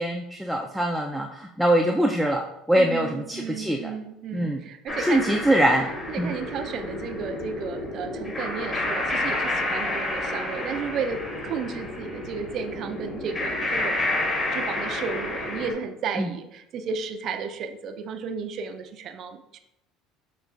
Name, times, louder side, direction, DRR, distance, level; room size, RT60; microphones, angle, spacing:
voice 1, 0.0-3.9 4.3-4.6 5.0-5.9 6.2-6.3 16.2-16.3, right 1 dB, ahead, 0 dB, 0.4 m, -23 dB
voice 2, 2.7-5.4 6.1-14.0 14.5-19.6, right 6 dB, 55° right, 6 dB, 0.5 m, -33 dB
sound 1, 4.9-15.7, left 1 dB, 30° left, 1.5 m, -30 dB
6.5 x 2.9 x 2.5 m, 0.85 s
supercardioid pair, 85°, 0 cm